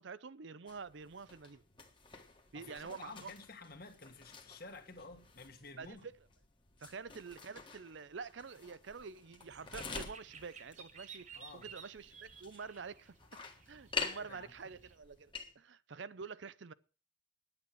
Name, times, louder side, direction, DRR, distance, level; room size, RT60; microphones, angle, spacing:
voice 1, 0.0-1.6 2.5-3.3 5.8-6.1 6.8-11.3 11.5-13.1 13.7-16.7, right 5 dB, 65° right, 0.6 m, -47 dB
sound 1, 0.7-15.5, left 4 dB, 25° left, 1.5 m, -48 dB
voice 2, 2.5-6.1 11.3-11.7 14.1-14.5, left 3 dB, 50° left, 1.9 m, -52 dB
sound 2, 9.5-15.0, right 6 dB, 35° right, 1.2 m, -55 dB
10.5 x 8.7 x 7.5 m
head